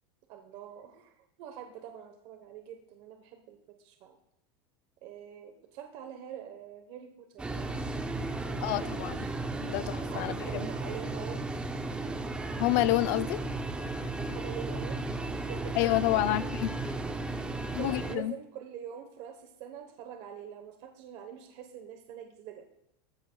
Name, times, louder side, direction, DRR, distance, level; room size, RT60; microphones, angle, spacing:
voice 1, 0.3-4.2 5.0-7.9 8.4-9.4 10.1-11.5 14.3-16.5 17.5-22.7, right 9 dB, 40° right, 5 dB, 1.1 m, -45 dB
sound 1, 7.4-18.2, right 2 dB, 5° right, 0.6 m, -35 dB
voice 2, 8.6-9.3 9.6-10.7 12.6-13.4 15.8-16.7 17.7-18.3, left 16 dB, 45° left, 14 dB, 0.5 m, -29 dB
18.5 x 14.5 x 2.3 m, 0.79 s
supercardioid pair, 165°, 13 cm